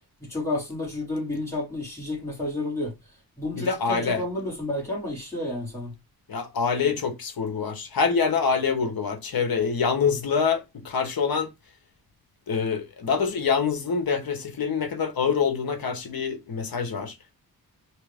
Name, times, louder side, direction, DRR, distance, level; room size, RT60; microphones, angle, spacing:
voice 1, 0.2-2.9 3.4-5.9, left 2 dB, 5° left, 3.1 m, -31 dB
voice 2, 3.6-4.2 6.3-11.5 12.5-17.2, left 5 dB, 65° left, 1.1 m, -25 dB
4.5 x 3.0 x 3.5 m
wide cardioid pair, 150°, 38 cm